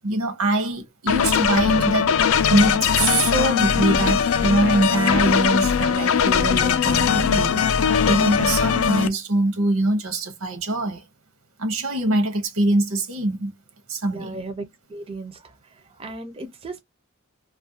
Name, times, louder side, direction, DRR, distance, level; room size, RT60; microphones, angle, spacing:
voice 1, 0.0-2.1 2.5-11.0 11.6-13.5 13.9-14.4, right 2 dB, 80° right, 0.7 m, -23 dB
sound 1, 1.1-9.1, left 7 dB, 75° left, 0.4 m, -20 dB
voice 2, 14.1-15.5 16.0-16.8, right 2 dB, 25° right, 0.4 m, -35 dB
2.4 x 2.1 x 2.6 m
head